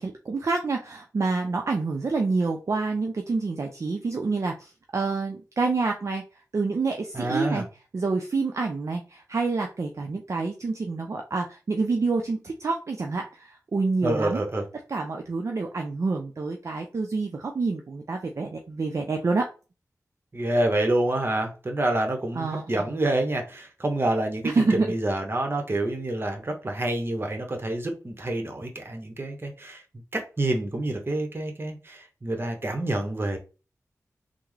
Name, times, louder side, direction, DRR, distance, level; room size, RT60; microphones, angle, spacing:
voice 1, 0.3-6.2 6.5-7.7 7.9-14.4 14.9-19.5 22.3-22.9 24.4-24.9, right 3 dB, 55° right, 3 dB, 0.4 m, -27 dB
voice 2, 7.1-7.6 14.0-14.6 20.3-29.8 30.1-33.4, right 1 dB, 40° right, 3 dB, 0.9 m, -27 dB
3.4 x 2.0 x 3.2 m, 0.33 s
cardioid pair, 45°, 6 cm